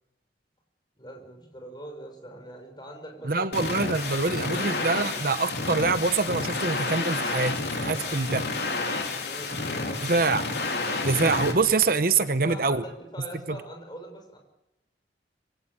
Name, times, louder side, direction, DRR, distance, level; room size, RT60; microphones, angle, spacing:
voice 1, 1.0-3.5 4.2-4.8 7.8-8.3 8.9-10.2 12.5-14.4, equal, 25° left, 3 dB, 6.3 m, -43 dB
voice 2, 3.2-7.5 7.9-8.4 10.0-10.5 11.0-12.8 13.5-13.6, right 4 dB, 55° right, 11 dB, 1.0 m, -25 dB
sound 1, 3.5-11.5, left 3 dB, 65° left, 3.7 m, -30 dB
25.5 x 17.5 x 8.8 m, 0.93 s
head